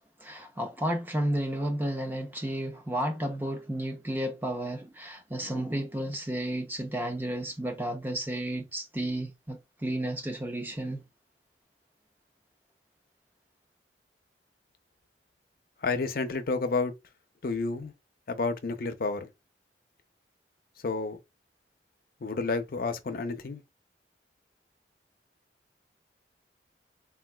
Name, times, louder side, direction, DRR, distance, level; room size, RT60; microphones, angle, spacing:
voice 1, 0.2-11.0, right 1 dB, 10° right, 0.6 m, -32 dB
voice 2, 15.8-16.9 17.4-17.9 18.3-19.3 20.8-21.2 22.2-23.6, left 3 dB, 55° left, 0.5 m, -30 dB
3.8 x 2.4 x 2.2 m
head